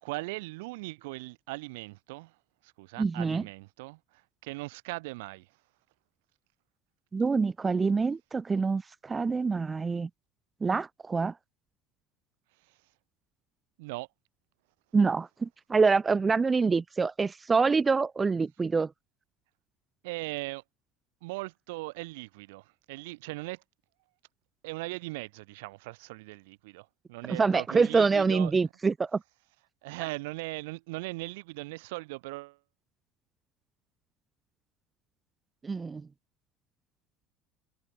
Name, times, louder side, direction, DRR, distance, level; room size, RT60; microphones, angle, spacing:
voice 1, 0.0-2.3 2.6-5.5 13.8-14.1 20.0-20.6 21.2-23.6 24.6-28.5 29.8-32.6, right 23 dB, 70° right, 1.6 m, -39 dB
voice 2, 3.0-3.4 7.1-10.1 10.6-11.3 14.9-18.9 27.3-29.2 35.6-36.0, right 4 dB, 25° right, 0.8 m, -26 dB
hypercardioid pair, 70°, 0 cm